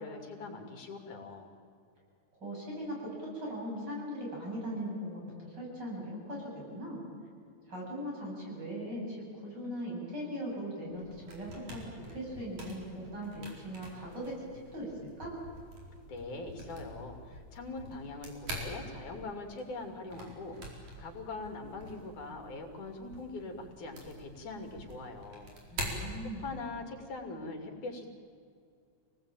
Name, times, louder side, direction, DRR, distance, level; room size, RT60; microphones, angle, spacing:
voice 1, 0.0-1.5 16.1-25.5 26.2-28.1, left 3 dB, 90° left, 4 dB, 4.2 m, -42 dB
voice 2, 2.4-7.0 7.7-12.8 13.1-14.4 14.7-14.9 15.2-15.4 25.7-26.5, equal, 35° right, -3 dB, 8.7 m, -39 dB
sound 1, 10.9-26.8, right 1 dB, 80° right, 6.0 m, -46 dB
27.5 x 19.0 x 8.9 m, 2.3 s
omnidirectional pair, 3.3 m